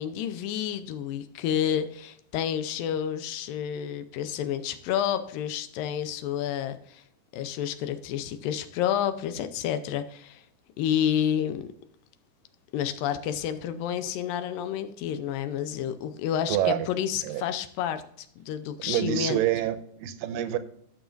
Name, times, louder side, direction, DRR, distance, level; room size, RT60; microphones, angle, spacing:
voice 1, 0.0-7.0 7.3-10.4 10.8-11.7 12.7-19.4, left 9 dB, 85° left, 10 dB, 2.4 m, -30 dB
voice 2, 16.5-16.9 17.2-17.4 18.8-20.6, right 12 dB, 85° right, 12 dB, 2.3 m, -27 dB
14.0 x 6.2 x 2.5 m, 0.66 s
omnidirectional pair, 4.0 m